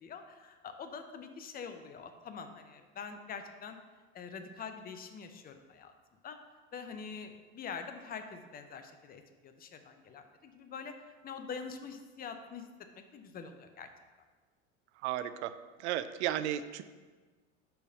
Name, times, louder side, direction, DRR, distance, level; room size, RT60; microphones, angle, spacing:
voice 1, 0.0-3.8 4.1-5.9 6.2-6.4 6.7-10.9 11.2-12.7 13.1-13.9, left 6 dB, 25° left, 7 dB, 0.6 m, -45 dB
voice 2, 15.0-15.5 15.8-16.8, right 12 dB, 60° right, 13 dB, 0.5 m, -34 dB
4.8 x 4.6 x 5.2 m, 1.4 s
hypercardioid pair, 80°, 40 cm